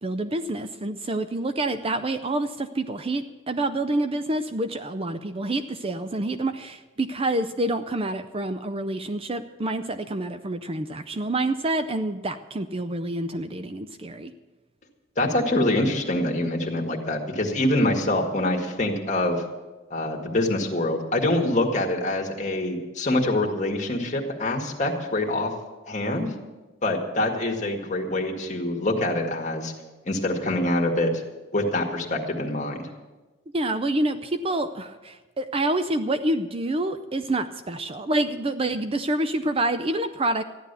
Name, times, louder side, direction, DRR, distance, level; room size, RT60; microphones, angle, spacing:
voice 1, 0.0-14.3 33.5-40.4, right 2 dB, 25° right, 9 dB, 0.5 m, -27 dB
voice 2, 15.2-19.4 19.9-25.5 25.9-26.3 26.8-29.7 30.1-31.1 31.5-32.9, left 1 dB, 35° left, 1 dB, 1.9 m, -25 dB
14.5 x 10.5 x 6.8 m, 1.2 s
head